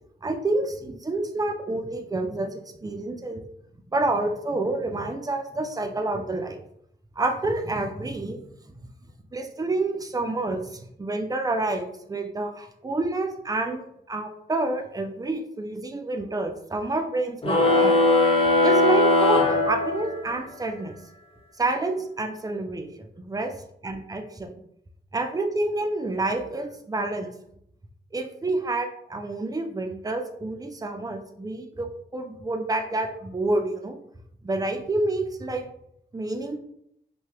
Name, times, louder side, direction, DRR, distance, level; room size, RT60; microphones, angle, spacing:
voice 1, 0.2-3.4 3.9-6.6 7.2-8.4 9.3-18.0 18.6-21.0 21.6-23.6 23.8-24.5 25.1-27.3 28.1-34.0 34.4-35.7 36.1-36.6, right 2 dB, 20° right, 5 dB, 0.4 m, -28 dB
sound 1, 17.4-20.4, left 2 dB, 30° left, 0.6 m, -20 dB
2.8 x 2.2 x 3.2 m, 0.74 s
cardioid pair, 60°, 19 cm